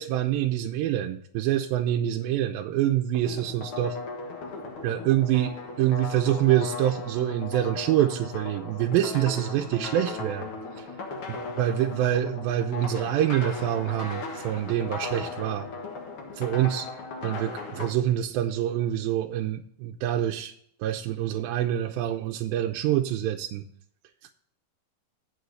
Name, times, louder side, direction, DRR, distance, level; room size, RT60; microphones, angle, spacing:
voice 1, 0.0-4.0 4.8-5.5 5.8-10.5 10.8-10.9 11.3-15.7 16.4-16.9 17.2-20.5 20.8-23.6, right 12 dB, 85° right, 3 dB, 2.4 m, -26 dB
sound 1, 3.1-17.9, left 3 dB, 55° left, 1.6 m, -37 dB
8.1 x 6.1 x 6.4 m, 0.64 s
omnidirectional pair, 4.1 m